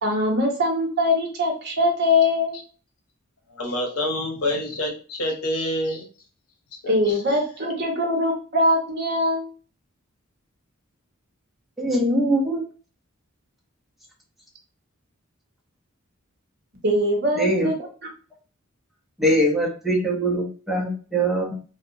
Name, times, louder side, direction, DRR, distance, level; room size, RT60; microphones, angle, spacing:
voice 1, 0.0-2.6 6.9-9.5 16.8-18.1, left 1 dB, 50° right, 1 dB, 0.8 m, -22 dB
voice 2, 3.6-6.0 6.8-7.1, left 1 dB, 85° left, 1 dB, 0.9 m, -27 dB
voice 3, 11.8-12.6 17.4-17.7 19.2-21.5, right 1 dB, ahead, -3 dB, 0.6 m, -22 dB
2.8 x 2.2 x 2.6 m, 0.38 s
head